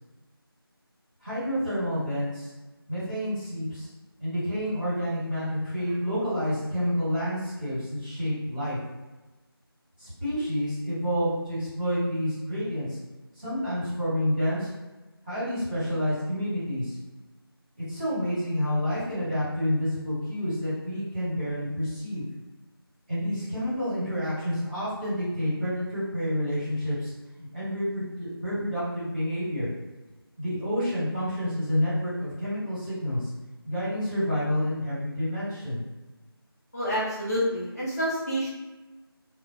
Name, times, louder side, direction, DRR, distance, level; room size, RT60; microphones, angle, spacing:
voice 1, 1.2-2.5 2.9-3.9 4.2-8.8 10.0-12.9 13.3-14.7 15.2-17.0 17.8-22.2 23.1-27.1 27.4-29.7 30.4-33.3 33.6-35.8, equal, 25° right, -13 dB, 1.5 m, -29 dB
voice 2, 36.7-38.5, equal, 40° left, -10 dB, 0.7 m, -28 dB
2.4 x 2.1 x 2.5 m, 1.2 s
figure-of-eight pair, 170°, 13 cm